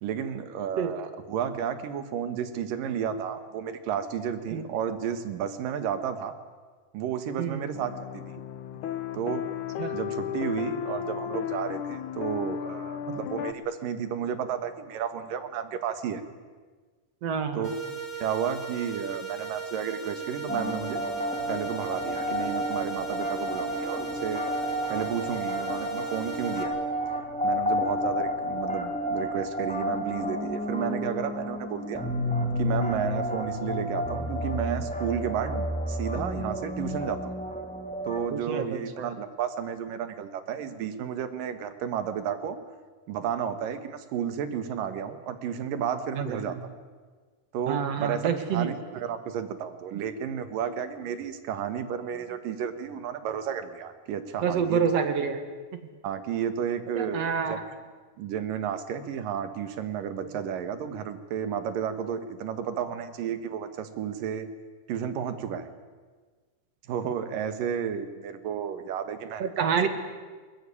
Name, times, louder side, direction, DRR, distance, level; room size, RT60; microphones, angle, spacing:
voice 1, 0.0-6.4 6.9-8.2 9.1-9.5 9.9-16.2 17.5-17.7 18.2-21.0 21.5-24.4 24.9-26.8 27.4-32.1 32.6-37.4 38.0-42.6 43.1-46.6 47.5-54.8 56.0-57.6 58.2-64.5 64.9-65.7 66.9-69.9, right 8 dB, 85° right, 11 dB, 3.2 m, -32 dB
sound 1, 7.7-13.5, left 10 dB, 70° left, 2.4 m, -34 dB
voice 2, 17.2-17.7 38.3-39.1 46.2-46.6 47.7-48.7 54.4-55.4 57.0-57.6 69.4-69.9, right 7 dB, 55° right, 8 dB, 2.7 m, -28 dB
sound 2, 17.6-26.6, right 5 dB, 20° left, 4.9 m, -38 dB
sound 3, 20.5-38.3, equal, 5° left, 1.4 m, -31 dB
21.5 x 20.5 x 9.9 m, 1.4 s
omnidirectional pair, 3.8 m